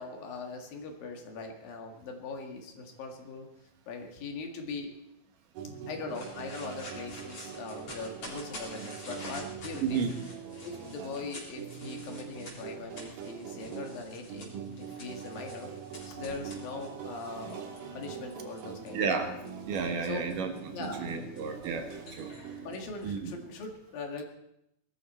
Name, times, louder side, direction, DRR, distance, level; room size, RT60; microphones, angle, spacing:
voice 1, 0.0-3.5 3.9-4.9 5.9-10.0 10.6-19.1 20.0-20.3 20.7-21.1 22.6-24.2, left 3 dB, 75° left, 4 dB, 3.6 m, -41 dB
sound 1, 5.5-23.0, right 7 dB, 85° right, 3.7 m, -43 dB
sound 2, 6.1-18.9 19.5-23.3, left 1 dB, 40° left, 4.6 m, -49 dB
voice 2, 18.9-19.3 19.7-20.5 20.8-22.3 23.0-23.3, right 5 dB, 70° right, 5 dB, 2.9 m, -32 dB
20.5 x 13.5 x 4.4 m, 0.81 s
omnidirectional pair, 4.2 m